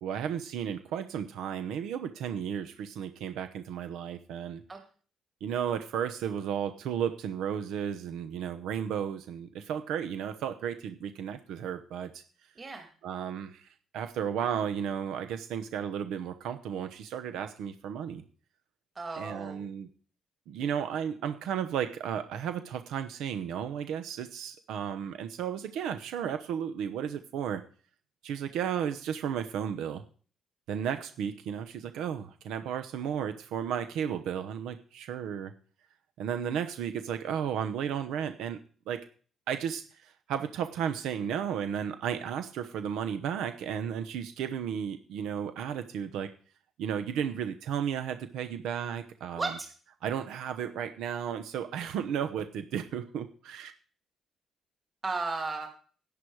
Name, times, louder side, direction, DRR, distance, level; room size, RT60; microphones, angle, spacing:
voice 1, 0.0-4.6 5.4-12.2 13.0-13.7 13.9-18.2 19.2-19.9 20.5-27.6 28.2-30.0 30.7-35.5 36.2-39.0 39.5-46.3 46.8-49.5 50.0-53.7, right 8 dB, 85° right, 9 dB, 0.9 m, -34 dB
voice 2, 12.6-12.9 18.9-19.6 49.4-49.7 55.0-55.7, right 3 dB, 30° right, 3 dB, 2.3 m, -34 dB
11.0 x 10.0 x 4.8 m, 0.42 s
cardioid pair, 90°, 0 cm